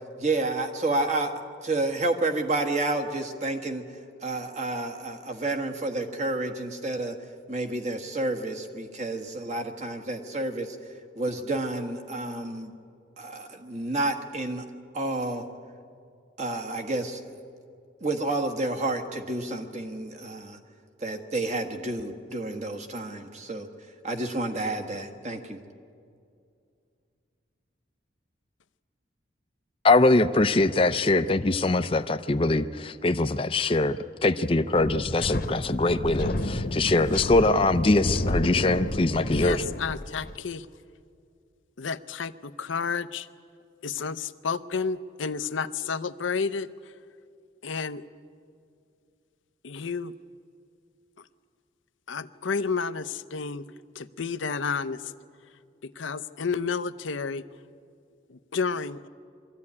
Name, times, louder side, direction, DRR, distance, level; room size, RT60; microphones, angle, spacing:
voice 1, 0.2-1.3 1.6-3.8 4.2-7.2 7.5-10.8 11.1-12.7 13.2-14.6 14.9-15.4 16.4-17.4 18.0-20.6 21.0-23.7 24.0-25.6, right 2 dB, 35° right, 5 dB, 1.4 m, -30 dB
voice 2, 29.8-34.0 34.2-39.6, left 2 dB, 30° left, 10 dB, 0.5 m, -22 dB
Wind, 34.8-40.4, left 1 dB, 45° left, 1.1 m, -31 dB
voice 3, 39.3-40.7 41.8-43.3 43.8-46.7 47.6-48.0 49.6-50.1 52.1-53.7 53.9-55.1 55.8-57.4 58.3-59.1, left 5 dB, 80° left, 13 dB, 0.6 m, -31 dB
23.0 x 14.0 x 9.7 m, 2.4 s
head